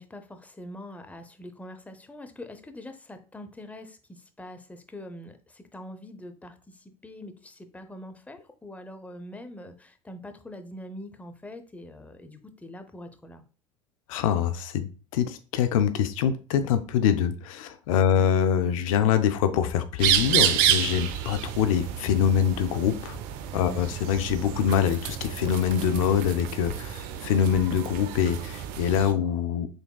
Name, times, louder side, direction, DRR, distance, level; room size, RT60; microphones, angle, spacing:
voice 1, 0.0-13.4 23.7-23.9, left 1 dB, 10° left, 0.6 m, -43 dB
voice 2, 14.1-23.2 23.5-29.7, left 8 dB, 75° left, 0.4 m, -24 dB
sound 1, 20.0-29.1, right 10 dB, 60° right, 0.5 m, -29 dB
3.9 x 3.4 x 2.3 m
hypercardioid pair, 75°, 17 cm